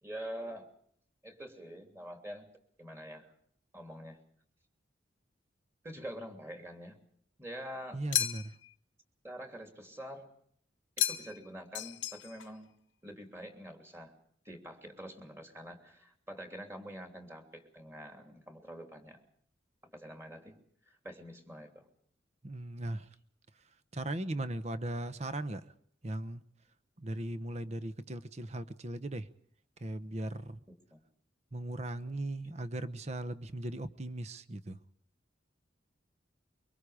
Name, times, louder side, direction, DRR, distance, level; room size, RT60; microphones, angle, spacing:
voice 1, 0.0-0.7 1.2-2.5 2.8-3.3 3.7-4.2 5.8-7.0 7.4-8.0 9.2-10.3 11.0-12.7 13.0-14.1 14.4-19.2 19.8-20.6 20.9-21.9 30.9-31.0, equal, 15° right, 4 dB, 3.0 m, -46 dB
voice 2, 7.9-8.6 22.4-23.1 23.9-25.7 26.0-26.4 27.0-29.3 29.8-30.6 31.5-34.8, right 1 dB, 35° right, 13 dB, 0.9 m, -38 dB
sound 1, 8.1-8.7 11.0-11.5 11.7-12.5, left 12 dB, 90° left, 0.9 m, -33 dB
24.5 x 24.0 x 5.0 m, 0.64 s
head